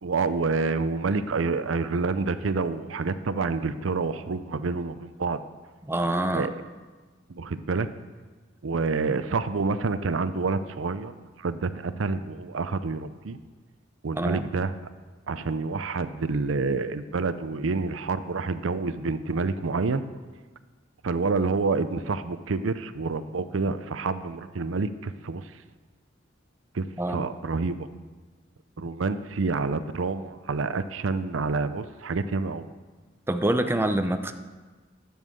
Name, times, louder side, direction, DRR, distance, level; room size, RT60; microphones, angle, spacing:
voice 1, 0.0-5.4 6.3-6.5 7.3-7.9 8.6-13.4 14.0-14.7 15.3-20.0 21.0-25.5 26.7-27.9 28.8-32.7, right 4 dB, 80° right, 12 dB, 0.6 m, -28 dB
voice 2, 5.9-6.5 14.2-14.4 27.0-27.3 33.3-34.3, right 1 dB, 10° right, 7 dB, 0.6 m, -25 dB
11.0 x 7.2 x 7.7 m, 1.3 s
head